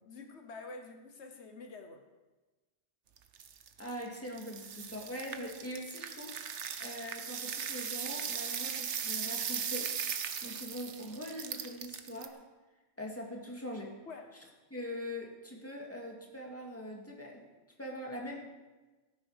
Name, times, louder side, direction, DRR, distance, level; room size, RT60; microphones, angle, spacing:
voice 1, 0.1-2.1 14.1-14.3, left 3 dB, 75° left, 6 dB, 1.3 m, -47 dB
sound 1, 3.2-12.3, right 7 dB, 90° right, 1.2 m, -38 dB
voice 2, 3.8-9.9 10.4-12.4 13.0-13.9 14.7-17.5 17.8-18.4, equal, 10° left, -1 dB, 2.3 m, -42 dB
16.0 x 9.6 x 5.0 m, 1.2 s
omnidirectional pair, 1.1 m